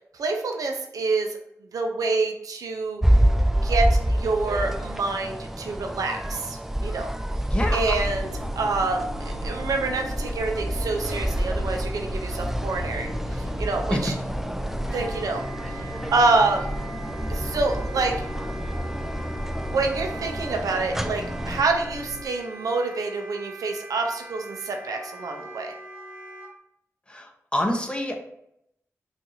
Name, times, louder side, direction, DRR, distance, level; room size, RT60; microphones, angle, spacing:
voice 1, 0.2-1.4 1.7-3.0 3.6-7.1 7.7-8.3 8.6-14.1 14.9-15.4 15.8-16.7 17.3-18.1 19.6-25.7, right 3 dB, 85° right, 3 dB, 0.4 m, -27 dB
sound 1, 3.0-21.6, right 1 dB, 5° right, 0.3 m, -28 dB
voice 2, 7.5-8.0 27.1-28.2, left 1 dB, 15° left, 2 dB, 0.7 m, -27 dB
sound 2, 7.9-22.3, left 1 dB, 80° left, 0.4 m, -38 dB
Wind instrument woodwind instrument, 14.8-26.5, right 2 dB, 30° right, 1.1 m, -42 dB
2.7 x 2.4 x 3.9 m, 0.76 s
cardioid pair, 55°, 6 cm